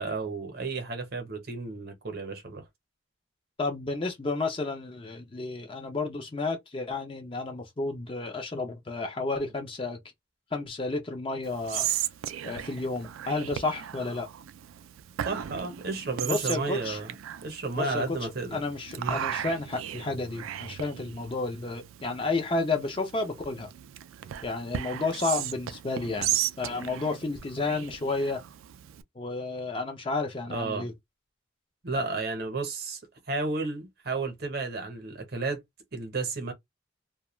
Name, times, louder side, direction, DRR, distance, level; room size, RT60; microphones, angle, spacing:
voice 1, 0.0-2.6 15.2-17.1 17.4-18.6 19.0-19.2 30.5-30.9 31.8-33.0 33.3-35.6 35.9-36.5, right 3 dB, 50° right, 0.8 m, -32 dB
voice 2, 3.6-10.0 10.5-11.9 12.4-14.3 16.2-17.0 17.8-23.7 24.4-28.4 29.2-30.9, left 3 dB, 25° left, 0.5 m, -31 dB
Whispering, 11.4-29.0, right 11 dB, 85° right, 0.3 m, -36 dB
2.3 x 2.1 x 3.0 m
head